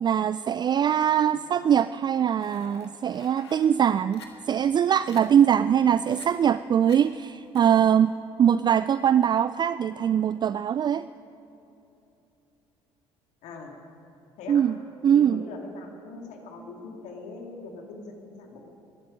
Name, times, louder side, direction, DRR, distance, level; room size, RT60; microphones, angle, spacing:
voice 1, 0.0-8.1 8.4-11.1 14.5-14.7 15.0-15.4, right 9 dB, 35° right, 15 dB, 0.3 m, -22 dB
sound 1, 2.4-3.7 4.1-4.3 4.7-4.8 5.1-5.2 6.0-6.3 6.9-7.0 7.5-7.6, left 6 dB, 85° left, 1.3 m, -48 dB
voice 2, 13.4-13.8 14.4-14.7 15.0-18.7, left 3 dB, 65° left, 1 dB, 2.5 m, -42 dB
21.5 x 12.0 x 5.2 m, 2.9 s
hypercardioid pair, 55°, 13 cm